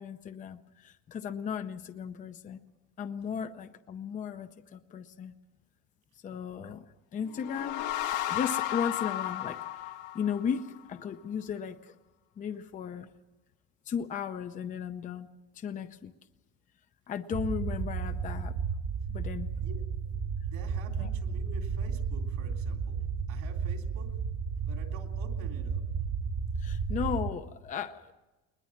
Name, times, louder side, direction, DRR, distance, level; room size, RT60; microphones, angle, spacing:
voice 1, 0.0-2.6 3.0-5.3 6.2-6.9 7.1-7.8 8.3-11.9 12.4-13.1 13.9-15.3 15.5-16.1 17.1-18.5 19.1-19.5 21.0-21.1 26.6-28.1, left 7 dB, 25° left, 9 dB, 0.6 m, -36 dB
sound 1, 7.2-10.8, left 13 dB, 75° left, 1.6 m, -34 dB
sound 2, 17.3-27.3, right 6 dB, 25° right, 1.1 m, -33 dB
voice 2, 20.4-24.2 24.6-25.8, right 4 dB, 70° right, 3 dB, 3.3 m, -49 dB
21.0 x 20.5 x 7.2 m, 1.1 s
cardioid pair, 160°, 31 cm